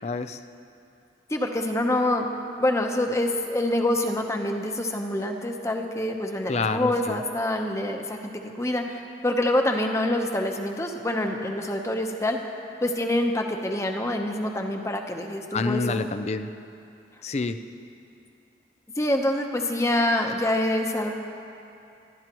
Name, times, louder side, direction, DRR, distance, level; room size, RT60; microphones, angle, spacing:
voice 1, 0.0-0.4 6.5-7.2 15.5-16.5 17.2-17.6, left 3 dB, 35° left, 10 dB, 0.4 m, -28 dB
voice 2, 1.3-2.3 2.6-12.4 12.8-16.0 19.0-21.1, left 1 dB, 15° left, 3 dB, 0.9 m, -26 dB
26.5 x 12.5 x 3.0 m, 2.6 s
head